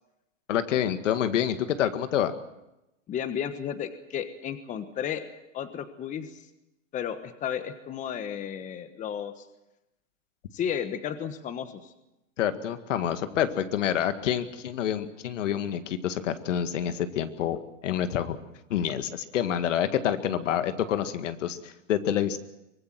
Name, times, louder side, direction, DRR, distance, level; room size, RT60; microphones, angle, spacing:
voice 1, 0.5-2.4 12.4-18.4 18.7-22.4, left 10 dB, 70° left, 10 dB, 2.0 m, -27 dB
voice 2, 3.1-5.2 5.5-6.4 6.9-9.4 10.5-11.8, left 8 dB, 20° left, 10 dB, 1.3 m, -33 dB
24.0 x 19.0 x 7.7 m, 0.93 s
hypercardioid pair, 145°, 38 cm